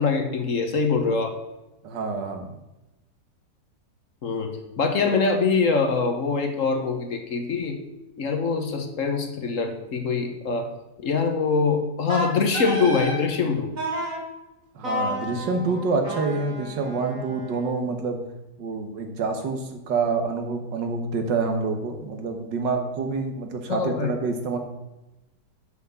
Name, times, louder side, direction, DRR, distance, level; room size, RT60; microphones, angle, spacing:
voice 1, 0.0-1.4 4.2-7.8 8.2-10.7 11.0-13.7 23.7-24.1, left 4 dB, 50° left, 4 dB, 1.3 m, -24 dB
voice 2, 1.8-2.5 14.8-18.2 18.6-24.6, right 4 dB, 90° right, 5 dB, 1.9 m, -27 dB
Wind instrument woodwind instrument, 12.1-13.2 13.8-14.2 14.8-17.8, equal, 50° right, 3.1 m, -31 dB
7.1 x 6.7 x 6.9 m, 0.98 s
omnidirectional pair, 1.9 m